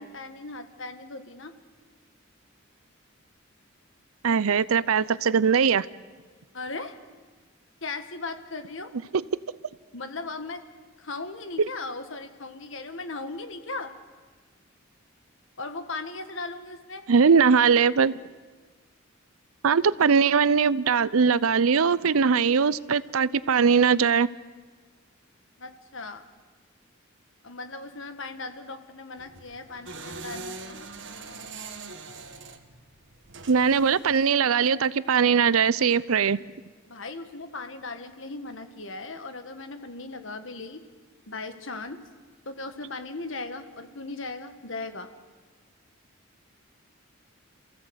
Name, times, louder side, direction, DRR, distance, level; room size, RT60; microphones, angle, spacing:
voice 1, 0.0-1.5 6.5-7.0 7.8-8.9 9.9-10.6 11.0-13.9 15.6-17.1 25.6-26.3 27.4-30.8 36.9-40.8 41.3-42.0 42.4-45.1, left 3 dB, 65° left, 8 dB, 1.6 m, -37 dB
voice 2, 4.2-5.9 9.1-9.2 17.1-18.1 19.6-24.3 33.5-36.4, right 6 dB, 80° right, 19 dB, 0.6 m, -21 dB
sound 1, 29.2-34.3, right 3 dB, 55° right, 1.5 m, -42 dB
27.5 x 15.5 x 8.0 m, 1.5 s
head